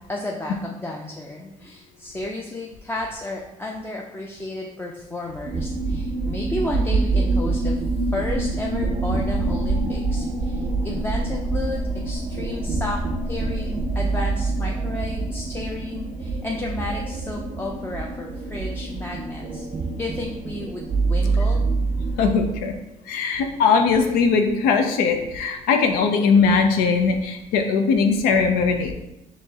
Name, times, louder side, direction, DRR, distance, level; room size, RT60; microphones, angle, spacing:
voice 1, 0.1-7.8 8.1-13.0 13.2-19.6 19.9-21.7, left 2 dB, 15° left, -1 dB, 0.5 m, -32 dB
sound 1, 5.4-22.6, right 3 dB, 40° right, 0.5 m, -25 dB
voice 2, 22.2-22.7 23.1-28.9, left 5 dB, 90° left, 5 dB, 0.4 m, -20 dB
4.5 x 3.0 x 2.8 m, 0.91 s
cardioid pair, 80°, 15 cm